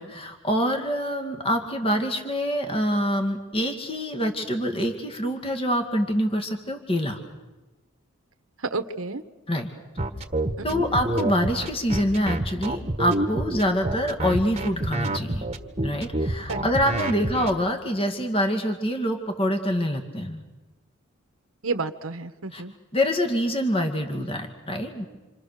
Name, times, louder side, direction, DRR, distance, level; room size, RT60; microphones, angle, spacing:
voice 1, 0.0-7.2 9.5-9.7 10.6-15.4 15.8-20.4 22.5-22.6 22.9-25.1, equal, 25° left, 5 dB, 2.1 m, -25 dB
voice 2, 8.6-9.2 10.6-10.8 16.5-16.7 17.1-17.4 21.6-22.7, right 3 dB, 70° right, 9 dB, 1.4 m, -31 dB
sound 1, 10.0-17.5, right 1 dB, 30° right, 1.5 m, -27 dB
27.5 x 26.0 x 6.7 m, 1.2 s
head